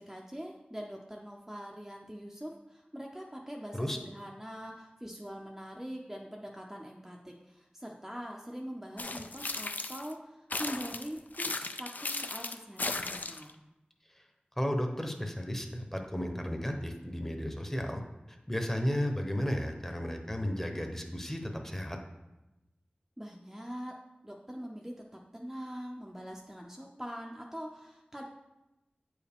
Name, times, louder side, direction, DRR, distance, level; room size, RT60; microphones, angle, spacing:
voice 1, 0.0-13.6 23.2-28.2, equal, 10° right, -1 dB, 0.6 m, -43 dB
sound 1, 9.0-10.1 10.5-13.5, left 3 dB, 60° left, 0.4 m, -36 dB
voice 2, 14.6-18.0 18.3-22.0, equal, 10° left, 4 dB, 0.9 m, -34 dB
8.8 x 4.7 x 3.5 m, 0.98 s
wide cardioid pair, 65°, 3 cm